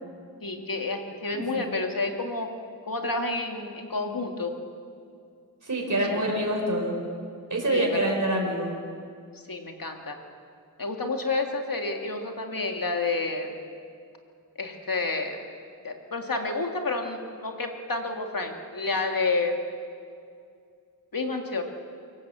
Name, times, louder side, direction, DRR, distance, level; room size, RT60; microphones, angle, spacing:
voice 1, 0.4-2.5 2.9-4.5 6.1-6.3 7.7-8.1 9.5-10.2 10.8-13.6 14.6-15.4 15.8-19.5 21.1-21.6, left 3 dB, 65° left, 3 dB, 2.5 m, -29 dB
voice 2, 5.6-6.9 7.5-8.7, right 1 dB, 50° right, 0 dB, 4.6 m, -26 dB
24.5 x 16.5 x 7.7 m, 2.4 s
wide cardioid pair, 65°, 37 cm